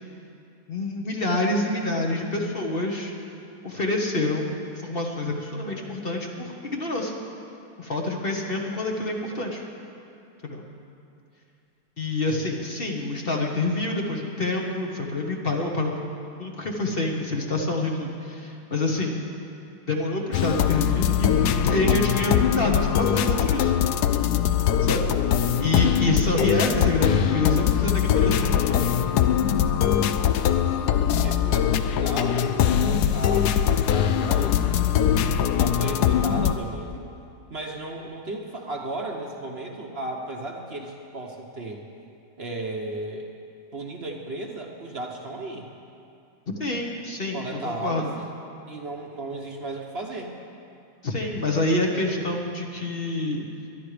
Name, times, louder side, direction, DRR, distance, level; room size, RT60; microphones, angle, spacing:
voice 1, 0.7-3.1 3.6-7.1 7.8-9.6 10.4-10.6 12.0-15.9 16.4-19.2 19.9-23.7 24.8-25.1 25.6-28.9 29.8-30.0 46.6-48.1 51.0-53.5, left 2 dB, 40° left, 0 dB, 1.4 m, -27 dB
sound 1, 20.3-36.5, left 9 dB, 80° left, 1.2 m, -22 dB
voice 2, 31.2-34.7 35.5-37.1 37.5-41.8 42.4-43.3 43.7-45.7 47.3-48.3 48.7-50.3, right 2 dB, 45° right, 0 dB, 1.2 m, -34 dB
22.0 x 10.5 x 5.0 m, 2.6 s
omnidirectional pair, 1.7 m